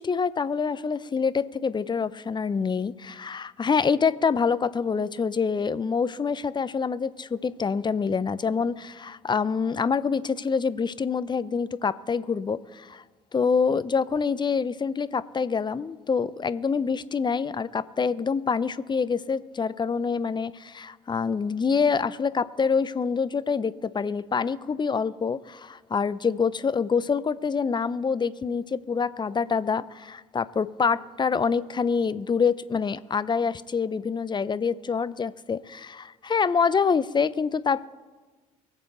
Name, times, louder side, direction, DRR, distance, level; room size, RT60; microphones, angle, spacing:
voice 1, 0.0-13.0 13.3-37.9, left 5 dB, 25° left, 16 dB, 0.7 m, -26 dB
24.0 x 8.2 x 4.0 m, 1.3 s
hypercardioid pair, 55°, 18 cm